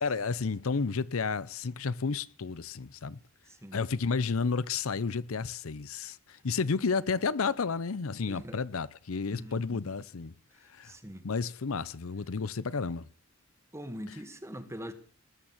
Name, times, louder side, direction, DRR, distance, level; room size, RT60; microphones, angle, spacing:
voice 1, 0.0-3.2 3.7-10.3 10.7-10.9 11.2-13.1, left 4 dB, 70° left, 0.7 m, -31 dB
voice 2, 3.5-3.8 8.3-8.6 9.3-9.8 10.8-11.3 13.7-14.9, equal, 15° right, 1.8 m, -42 dB
20.0 x 8.9 x 7.3 m
head